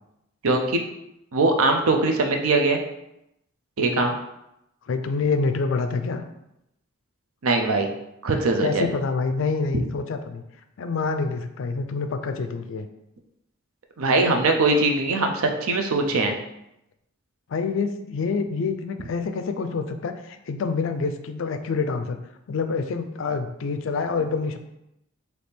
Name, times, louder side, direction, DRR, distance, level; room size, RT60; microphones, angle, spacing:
voice 1, 0.4-0.8 1.3-2.8 3.8-4.1 7.4-7.9 8.2-8.9 14.0-16.3, right 2 dB, 75° right, 4 dB, 0.6 m, -21 dB
voice 2, 4.8-6.2 8.6-10.4 10.8-12.9 17.5-22.2 22.5-24.6, left 4 dB, 60° left, 7 dB, 0.4 m, -27 dB
3.4 x 2.8 x 4.3 m, 0.84 s
head